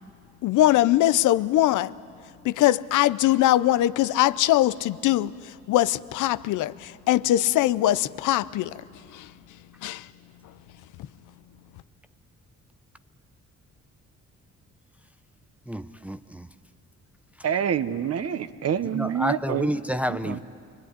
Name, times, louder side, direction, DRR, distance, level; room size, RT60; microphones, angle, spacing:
voice 1, 0.4-2.0 2.4-5.3 5.7-8.8 9.1-9.3 9.8-10.1, left 14 dB, 80° left, 0.7 m, -21 dB
voice 2, 15.7-16.5 18.9-20.4, equal, 5° right, 0.7 m, -29 dB
voice 3, 17.4-19.7 20.1-20.4, right 8 dB, 55° right, 1.1 m, -27 dB
25.5 x 23.0 x 9.8 m
cardioid pair, 90°, 30 cm